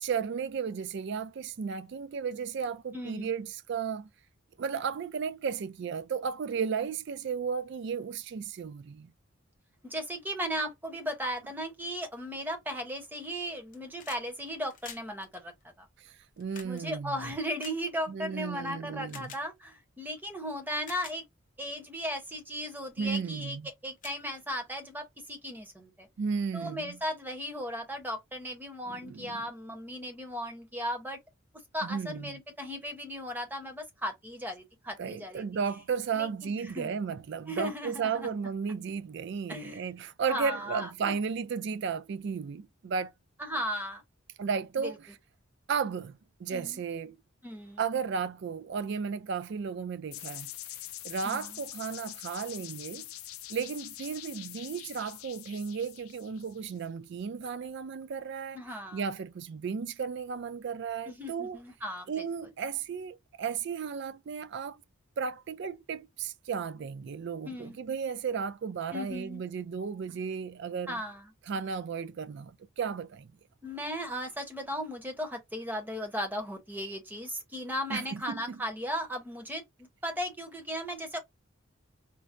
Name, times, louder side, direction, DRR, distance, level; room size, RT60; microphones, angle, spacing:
voice 1, 0.0-4.1 4.6-9.1 16.0-17.3 18.1-19.3 23.0-23.7 26.2-27.0 28.9-29.4 31.8-32.3 35.0-43.1 44.4-45.1 45.7-47.2 47.8-50.5 51.0-53.1 53.5-58.6 58.9-61.6 62.1-64.8 65.2-71.0 71.5-73.3 77.9-78.6, right 6 dB, 55° right, 0.3 m, -34 dB
voice 2, 2.9-3.3 9.8-15.5 15.8-15.9 16.6-21.2 21.6-23.6 23.8-26.1 26.5-31.2 31.7-35.4 36.1-36.9 37.5-38.3 39.5-39.8 40.3-41.1 43.4-44.0 44.8-45.0 46.5-46.8 47.4-47.8 51.2-51.6 58.5-59.0 61.1-62.3 67.5-67.8 68.9-69.4 70.9-71.3 73.6-81.2, equal, 10° right, 0.7 m, -36 dB
sound 1, 13.6-14.3 14.5-18.4 19.1-19.4 20.2-20.3 20.7-21.2 21.8-22.0 22.5-22.8 23.1-23.3 23.6-23.7 24.0-24.9 26.1-26.2, left 7 dB, 40° left, 0.6 m, -49 dB
sound 2, 50.1-56.8, left 14 dB, 80° left, 0.4 m, -44 dB
4.5 x 2.1 x 2.5 m
head